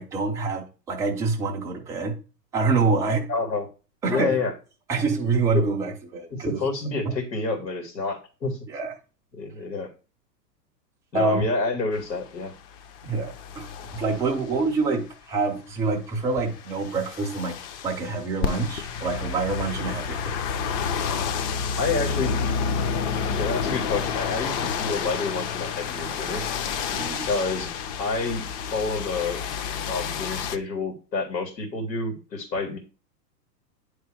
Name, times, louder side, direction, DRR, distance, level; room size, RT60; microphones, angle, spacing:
voice 1, 0.0-2.2 2.5-3.3 4.0-4.4 4.9-6.6 8.7-8.9 11.1-11.4 13.0-17.6 17.8-20.2 26.9-27.3, right 4 dB, 5° right, 0.3 m, -26 dB
voice 2, 3.3-3.7 4.1-4.5 5.5-5.6 6.3-8.6 9.3-9.9 11.1-12.5 21.8-22.4 23.4-26.5 27.3-27.7 28.0-28.4 28.7-29.4 29.9-32.8, left 3 dB, 90° left, 2.2 m, -28 dB
sound 1, 12.0-14.8 16.1-30.6, left 6 dB, 40° left, 0.8 m, -30 dB
8.9 x 3.4 x 4.7 m
hypercardioid pair, 115°, 49 cm